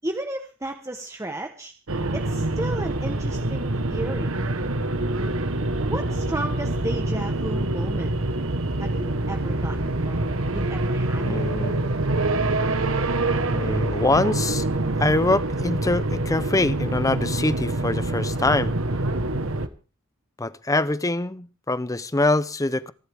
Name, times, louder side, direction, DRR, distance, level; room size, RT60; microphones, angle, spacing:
voice 1, 0.0-1.7 2.1-4.3 5.9-8.1 8.8-11.6, right 1 dB, 15° right, 4 dB, 1.1 m, -33 dB
sound 1, 1.9-19.7, right 2 dB, 75° right, 1.4 m, -25 dB
voice 2, 11.2-11.8 13.5-14.7 15.0-18.7 20.4-22.9, left 2 dB, 15° left, 16 dB, 0.7 m, -24 dB
27.0 x 11.5 x 3.6 m, 0.34 s
head